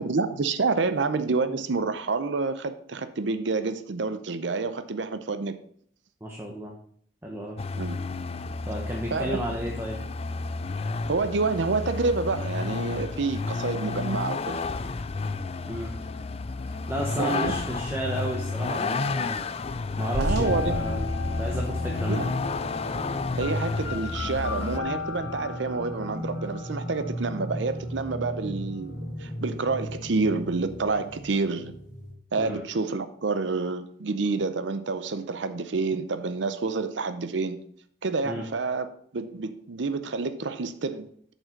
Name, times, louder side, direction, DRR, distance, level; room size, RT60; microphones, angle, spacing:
voice 1, 0.0-5.6 7.8-8.1 9.1-9.4 11.1-14.6 17.2-17.5 20.2-20.8 22.1-22.3 23.3-31.7 32.3-37.6 38.0-38.9 39.1-41.1, right 4 dB, 70° right, 0.7 m, -28 dB
voice 2, 6.2-6.7 7.2-7.6 8.7-10.0 15.7-15.9 16.9-19.5 20.0-21.0 21.4-22.3 32.4-32.6 38.2-38.4, right 1 dB, 15° right, 1.0 m, -32 dB
Vehicle, 7.6-24.8, left 3 dB, 30° left, 0.4 m, -31 dB
sound 1, 20.1-32.1, left 2 dB, 55° left, 3.3 m, -34 dB
7.6 x 5.5 x 5.8 m
head